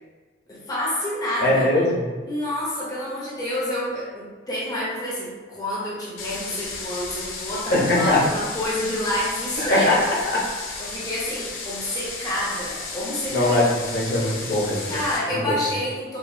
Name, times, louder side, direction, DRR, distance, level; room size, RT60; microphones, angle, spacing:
voice 1, 0.5-1.7 2.3-9.9 10.8-13.5 14.9-16.2, left 1 dB, 20° left, -7 dB, 0.7 m, -28 dB
voice 2, 1.4-2.1 7.7-8.2 9.6-10.0 10.2-10.4 13.3-13.6 13.9-15.0 15.3-15.5, left 1 dB, 50° left, -5 dB, 0.9 m, -21 dB
sound 1, 6.2-15.2, left 3 dB, 80° left, 0.6 m, -34 dB
4.7 x 2.4 x 2.6 m, 1.4 s
head